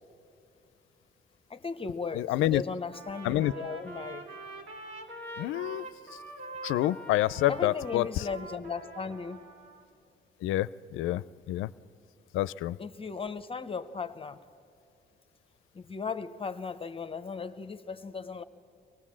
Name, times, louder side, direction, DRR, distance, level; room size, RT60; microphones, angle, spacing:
voice 1, 1.5-4.3 7.5-9.4 12.8-14.4 15.7-18.4, left 5 dB, 30° left, 11 dB, 0.7 m, -37 dB
voice 2, 2.1-2.6 3.2-3.5 5.4-5.8 6.6-8.3 10.4-11.7 12.3-12.8, left 15 dB, 90° left, 19 dB, 0.4 m, -28 dB
Trumpet, 2.9-9.8, right 2 dB, 75° right, 2.4 m, -44 dB
24.5 x 18.5 x 7.4 m, 2.5 s
cardioid pair, 90°, 20 cm